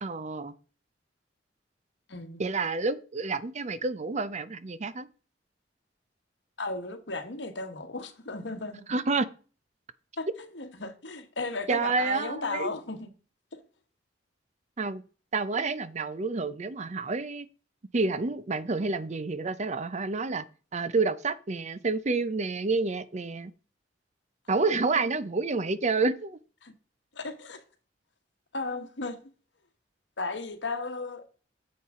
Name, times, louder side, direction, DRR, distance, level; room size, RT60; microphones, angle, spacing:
voice 1, 0.0-0.5 2.4-5.1 8.9-9.3 11.7-12.7 14.8-15.0 15.3-17.5 17.9-20.4 20.7-23.5 24.5-26.4, right 3 dB, 40° right, 0.6 m, -29 dB
voice 2, 2.1-2.4 6.6-8.8 10.2-13.1 13.5-13.6 24.9-25.0 26.6-26.7 27.1-27.6 28.5-29.2 30.2-31.2, left 3 dB, 75° left, 1.4 m, -35 dB
9.7 x 7.6 x 3.7 m
head